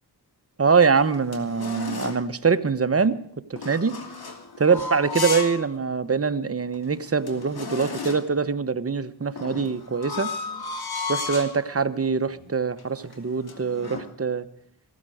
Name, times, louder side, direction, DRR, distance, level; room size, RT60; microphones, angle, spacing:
sound 1, 0.6-2.3 3.6-5.6 6.0-6.1 6.7-6.8 7.0-8.4 9.4-11.6 12.3-12.5 12.8-14.1, left 4 dB, 65° left, 2.7 m, -34 dB
voice 1, 0.6-3.2 3.5-4.0 4.6-10.3 11.1-14.4, right 5 dB, 35° right, 10 dB, 1.1 m, -23 dB
17.0 x 13.5 x 4.9 m, 0.68 s
cardioid pair, 70°, 40 cm